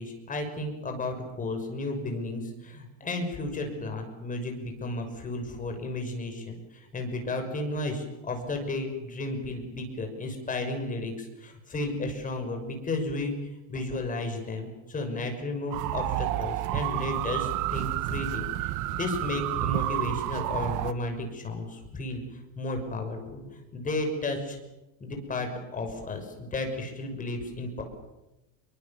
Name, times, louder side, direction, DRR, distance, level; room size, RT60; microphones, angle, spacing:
voice 1, 0.0-13.3 13.7-22.2 22.6-24.6 25.0-27.8, left 2 dB, 20° left, 4 dB, 6.1 m, -33 dB
sound 1, 15.7-20.9, right 16 dB, 55° right, 1.2 m, -30 dB
27.5 x 23.5 x 7.3 m, 0.99 s
cardioid pair, 140°, 36 cm